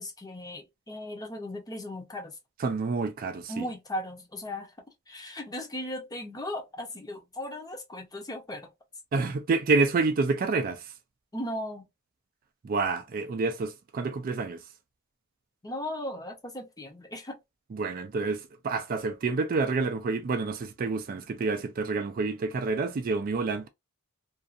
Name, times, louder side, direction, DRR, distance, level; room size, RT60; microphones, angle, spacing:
voice 1, 0.0-2.4 3.5-4.7 5.1-8.7 11.3-11.8 15.6-17.4, left 1 dB, 15° left, 0.7 m, -37 dB
voice 2, 2.6-3.7 9.1-10.9 12.6-14.6 17.7-23.7, right 4 dB, 40° right, 0.3 m, -28 dB
2.6 x 2.4 x 2.4 m
head